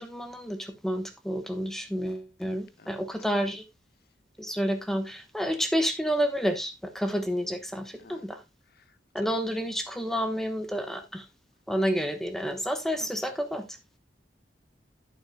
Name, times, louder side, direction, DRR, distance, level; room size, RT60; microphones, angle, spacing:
voice 1, 0.0-3.6 4.4-8.4 9.1-11.3 11.7-13.7, equal, ahead, 1.0 m, -30 dB
voice 2, 2.8-3.1 8.0-8.2 8.8-8.9 9.2-9.4 13.0-13.1, left 3 dB, 60° left, 0.9 m, -50 dB
11.0 x 9.2 x 2.3 m
head